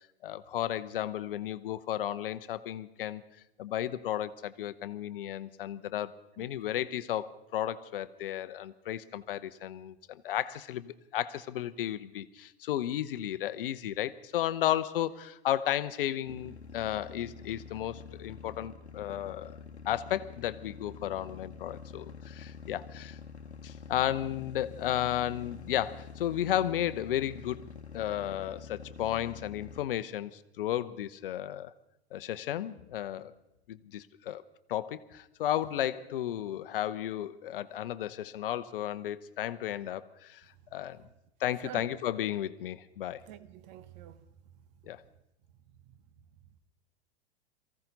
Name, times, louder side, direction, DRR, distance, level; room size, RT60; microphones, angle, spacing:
voice 1, 0.0-3.2 3.6-19.6 19.8-23.2 23.6-27.6 27.9-31.7 32.1-33.3 33.7-34.4 34.7-41.0 41.4-43.2 44.9-45.0, left 12 dB, 55° left, 0.8 m, -34 dB
sound 1, 16.3-29.8, left 6 dB, 85° left, 1.1 m, -47 dB
voice 2, 41.6-42.0 43.3-44.2 45.9-46.0, right 11 dB, 45° right, 1.0 m, -48 dB
23.0 x 15.5 x 4.0 m
figure-of-eight pair, 100°, 32 cm